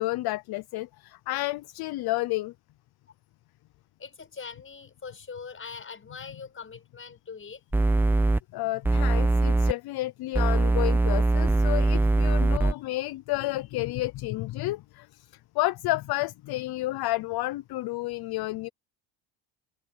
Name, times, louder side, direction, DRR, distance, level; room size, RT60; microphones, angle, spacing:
voice 1, 0.0-2.5 8.5-18.7, left 18 dB, 55° left, 0.6 m, -31 dB
voice 2, 4.0-7.6, left 5 dB, 25° left, 6.0 m, -42 dB
sound 1, 7.7-8.4 8.8-9.7 10.3-12.7, right 2 dB, 5° right, 0.4 m, -22 dB
open air
cardioid pair, 115°, 47 cm